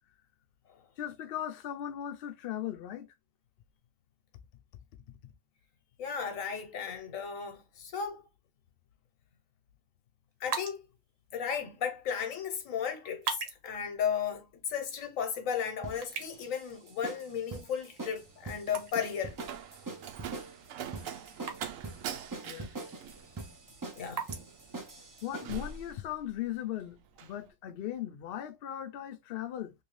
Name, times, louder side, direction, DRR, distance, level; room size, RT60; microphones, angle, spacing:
voice 1, 1.0-3.1 22.5-22.8 25.2-29.7, left 11 dB, 60° left, 0.7 m, -38 dB
voice 2, 6.0-8.3 10.4-10.8 11.3-19.3 24.0-24.2, left 7 dB, 90° left, 1.3 m, -35 dB
sound 1, 10.3-25.7, right 6 dB, 55° right, 1.0 m, -45 dB
sound 2, 15.8-25.7, right 3 dB, 35° right, 0.3 m, -44 dB
Slam, 18.1-26.6 26.9-27.4, right 7 dB, 85° right, 1.0 m, -44 dB
3.0 x 2.7 x 3.0 m
omnidirectional pair, 1.3 m